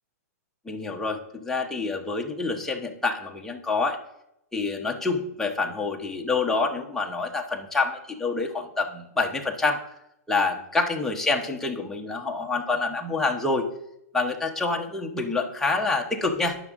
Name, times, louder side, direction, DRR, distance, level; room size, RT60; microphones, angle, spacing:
voice 1, 0.7-4.0 4.5-9.8 10.3-13.7 14.1-16.6, left 3 dB, 5° left, 1 dB, 0.9 m, -27 dB
9.6 x 6.1 x 3.6 m, 0.81 s
hypercardioid pair, 145°, 9 cm